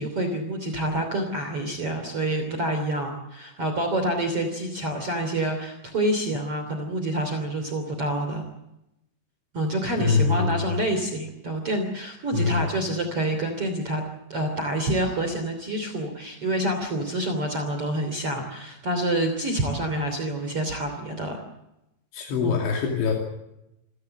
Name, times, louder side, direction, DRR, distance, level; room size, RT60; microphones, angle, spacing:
voice 1, 0.0-8.4 9.5-14.0 14.3-21.4 22.4-22.6, right 1 dB, 35° right, 5 dB, 3.4 m, -27 dB
voice 2, 10.0-10.6 12.3-12.7 22.1-23.1, left 5 dB, 80° left, 1 dB, 5.1 m, -23 dB
28.5 x 15.5 x 7.7 m, 0.90 s
omnidirectional pair, 5.4 m